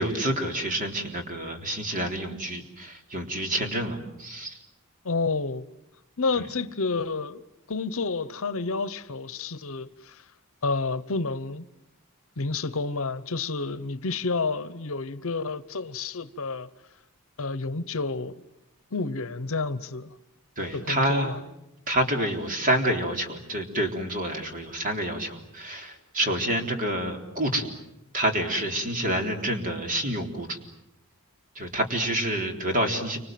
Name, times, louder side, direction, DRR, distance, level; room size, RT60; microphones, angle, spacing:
voice 1, 0.0-4.6 20.6-21.4 21.9-27.7 28.1-30.6 31.6-33.2, right 1 dB, 40° right, 3.9 m, -28 dB
voice 2, 5.0-5.7 6.2-7.4 7.7-10.2 10.6-11.6 12.4-16.7 17.4-18.4 18.9-20.1 20.7-21.4, left 3 dB, 65° left, 1.0 m, -30 dB
29.5 x 26.0 x 7.7 m
head